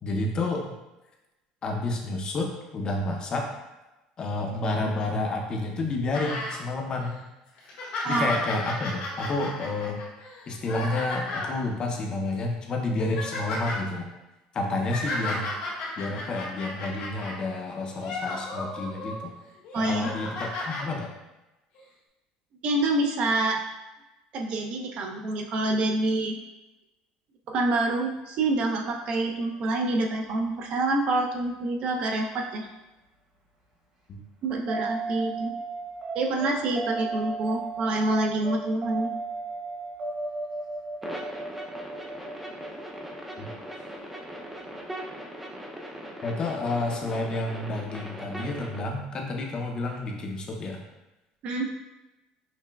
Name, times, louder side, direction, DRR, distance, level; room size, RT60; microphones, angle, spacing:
voice 1, 0.0-0.7 1.6-3.5 4.2-7.2 8.1-10.0 10.5-14.1 14.5-15.5 16.0-19.3 19.8-21.1 34.1-34.2 43.4-43.5 46.2-50.8, left 2 dB, 35° left, 1 dB, 0.6 m, -30 dB
sound 1, 6.1-6.6 7.0-7.1 7.6-11.5 12.3-12.5 12.8-13.8 14.6-17.4 17.9-19.2 19.6-20.8 21.7-21.8, left 2 dB, 75° left, 1.3 m, -34 dB
voice 2, 19.7-20.1 22.6-23.6 24.3-26.4 27.5-32.7 34.4-35.5 36.1-39.1 51.4-51.7, right 2 dB, 55° right, 2 dB, 0.5 m, -27 dB
sound 2, 34.7-44.8, right 3 dB, 35° right, 1.1 m, -35 dB
sound 3, 41.0-48.8, right 1 dB, 5° right, 0.5 m, -40 dB
5.7 x 2.2 x 2.2 m, 1.0 s
supercardioid pair, 110°, 2 cm